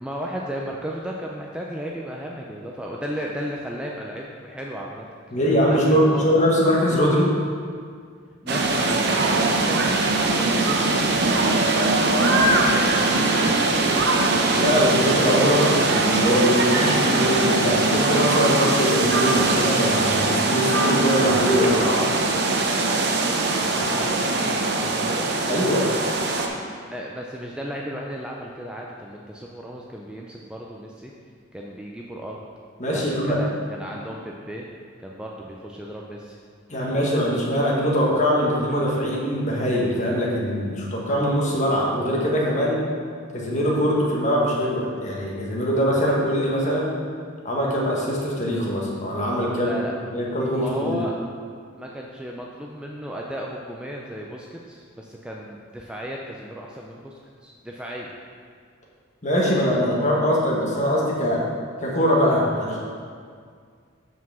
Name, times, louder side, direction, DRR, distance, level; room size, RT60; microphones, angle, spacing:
voice 1, 0.0-5.1 5.7-6.3 8.4-14.1 23.7-25.3 26.9-31.1 31.5-32.4 32.9-34.7 35.0-36.4 49.6-49.9 50.5-51.2 51.8-58.1, equal, 5° right, -2 dB, 0.4 m, -35 dB
voice 2, 5.3-7.3 14.5-22.0 25.5-25.9 32.8-33.4 36.7-42.8 43.3-46.9 47.4-49.8 50.1-51.0 59.2-61.4 61.8-62.8, equal, 40° left, -4 dB, 1.4 m, -22 dB
sound 1, 8.5-26.5, right 2 dB, 55° right, 0.7 m, -21 dB
5.8 x 4.7 x 6.1 m, 2.1 s
head